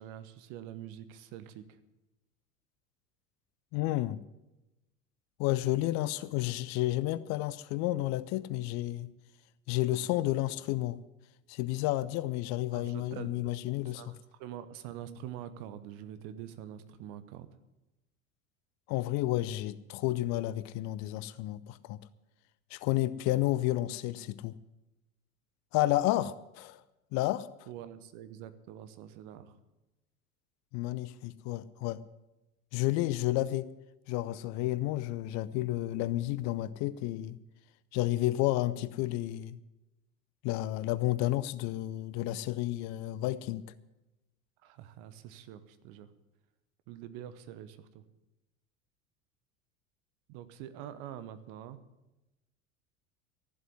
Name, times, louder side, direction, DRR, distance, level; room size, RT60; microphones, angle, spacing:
voice 1, 0.0-1.8 12.7-13.3 13.8-17.5 27.7-29.5 44.6-46.1 46.9-48.0 50.3-51.8, right 10 dB, 50° right, 12 dB, 1.2 m, -45 dB
voice 2, 3.7-4.2 5.4-9.1 9.7-11.0 11.5-14.0 18.9-22.0 22.7-24.6 25.7-26.8 27.1-27.5 30.7-32.0 32.7-33.7 34.1-37.4 37.9-39.6 40.4-43.6, left 16 dB, 40° left, 17 dB, 0.6 m, -31 dB
13.5 x 7.8 x 9.7 m, 0.98 s
figure-of-eight pair, 75°, 41 cm